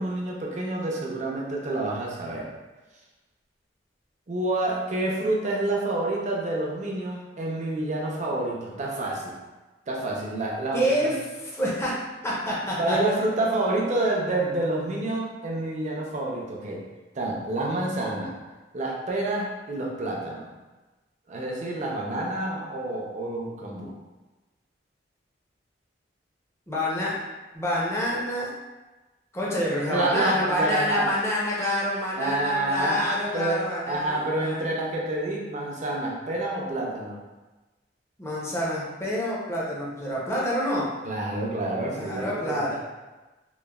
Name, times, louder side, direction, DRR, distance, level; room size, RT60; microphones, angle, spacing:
voice 1, 0.0-2.5 4.3-9.3 9.9-11.1 12.8-16.8 17.1-18.3 18.7-20.5 21.3-23.9 29.9-31.1 32.2-37.2 41.0-42.7, right 2 dB, 40° right, -2 dB, 0.5 m, -28 dB
voice 2, 10.7-11.9 12.2-13.0 26.7-27.1 27.5-28.5 29.3-34.6 38.2-40.9 41.9-42.7, equal, 15° left, -6 dB, 0.5 m, -27 dB
3.0 x 2.1 x 2.2 m, 1.2 s
head